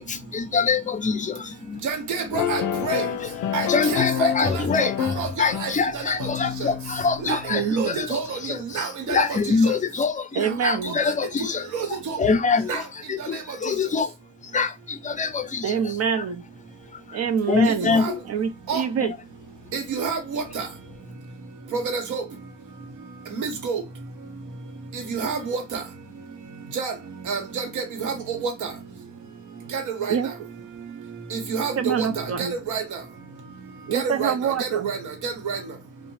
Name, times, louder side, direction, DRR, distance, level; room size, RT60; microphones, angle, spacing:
voice 1, 0.0-1.9 3.2-3.3 3.7-5.0 5.4-14.1 14.4-16.2 17.1-17.2 17.5-18.2, left 4 dB, 25° left, 0.4 m, -25 dB
voice 2, 1.8-3.0 3.5-4.3 5.2-5.7 7.3-7.4 7.8-8.2 8.7-9.2 11.7-11.9 12.7-12.8 17.8-18.1 18.7-18.8 19.7-20.6 21.7-22.2 23.4-23.8 25.1-25.6 26.8-26.9 27.3-28.1 28.4-28.5 29.7-29.8 30.1-30.2 31.3-32.1 32.7-32.8 33.9-34.3 34.6-35.0 35.2-35.6, right 5 dB, 80° right, 1.0 m, -27 dB
sound 1, 2.3-7.7, left 9 dB, 90° left, 0.5 m, -29 dB
voice 3, 7.5-8.0 10.3-11.0 15.6-16.4 17.1-19.1 30.1-30.3 31.8-32.6 33.9-34.9, right 7 dB, 55° right, 0.6 m, -26 dB
2.7 x 2.1 x 3.0 m
cardioid pair, 90°, 30 cm